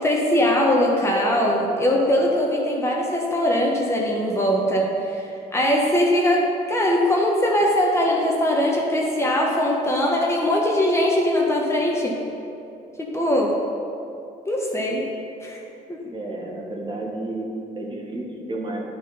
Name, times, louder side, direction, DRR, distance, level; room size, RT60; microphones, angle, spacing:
voice 1, 0.0-12.2 13.0-13.6 14.5-15.1 15.4-15.6 15.9-16.0, left 1 dB, 15° left, -2 dB, 1.1 m, -21 dB
voice 2, 16.0-18.8, right 2 dB, 30° right, -1 dB, 1.4 m, -31 dB
10.5 x 4.3 x 5.3 m, 2.7 s
cardioid pair, 110°, 17 cm